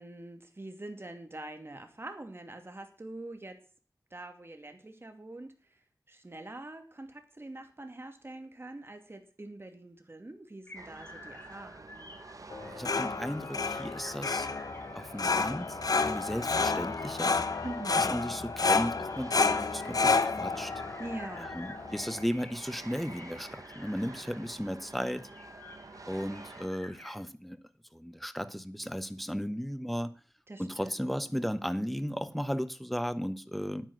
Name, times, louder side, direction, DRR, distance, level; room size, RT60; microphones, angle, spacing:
voice 1, 0.0-3.6 4.1-5.5 6.1-12.1 17.6-18.1 21.0-21.6 30.5-31.2, right 2 dB, 40° right, 2.5 m, -44 dB
sound 1, 10.7-27.2, left 2 dB, 30° left, 5.7 m, -52 dB
sound 2, 10.7-26.7, right 3 dB, 60° right, 1.2 m, -50 dB
sound 3, 12.5-22.2, left 4 dB, 75° left, 0.9 m, -30 dB
voice 2, 12.7-14.5 14.9-17.4 18.0-20.7 21.4-25.3 26.1-27.6 27.9-30.1 30.6-33.9, equal, ahead, 1.1 m, -35 dB
9.9 x 9.4 x 6.3 m
wide cardioid pair, 55°, 6 cm